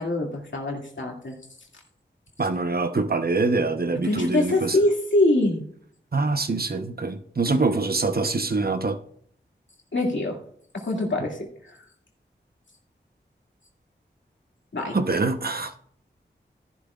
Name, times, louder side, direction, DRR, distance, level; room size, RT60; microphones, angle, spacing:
voice 1, 0.0-1.3 4.0-5.6 9.9-10.4 10.7-11.8 14.7-15.0, left 1 dB, 80° left, -1 dB, 2.3 m, -24 dB
voice 2, 2.4-4.8 6.1-9.0 14.9-15.7, right 3 dB, 55° right, 8 dB, 0.9 m, -24 dB
13.5 x 11.0 x 2.4 m, 0.63 s
wide cardioid pair, 50°, 19 cm